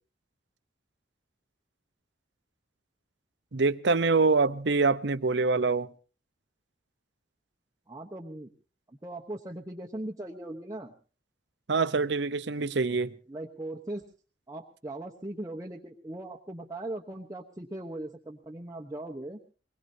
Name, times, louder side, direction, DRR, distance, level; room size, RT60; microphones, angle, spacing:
voice 1, 3.5-5.9 11.7-13.1, right 4 dB, 65° right, 0.8 m, -25 dB
voice 2, 7.9-8.5 8.9-10.9 13.3-14.0 14.5-19.4, right 1 dB, 20° right, 1.0 m, -39 dB
23.5 x 20.5 x 2.8 m
head